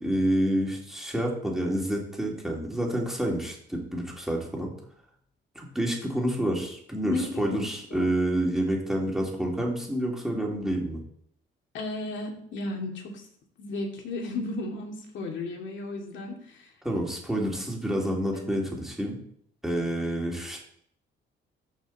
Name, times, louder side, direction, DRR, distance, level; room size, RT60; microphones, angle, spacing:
voice 1, 0.0-4.7 5.5-11.0 16.8-19.2 19.6-20.6, right 1 dB, ahead, -2 dB, 3.1 m, -28 dB
voice 2, 7.0-7.6 7.9-8.0 11.7-13.3 13.6-16.7 18.3-18.6, left 2 dB, 70° left, 1 dB, 2.7 m, -34 dB
13.5 x 5.7 x 4.3 m, 0.67 s
cardioid pair, 90°, 20 cm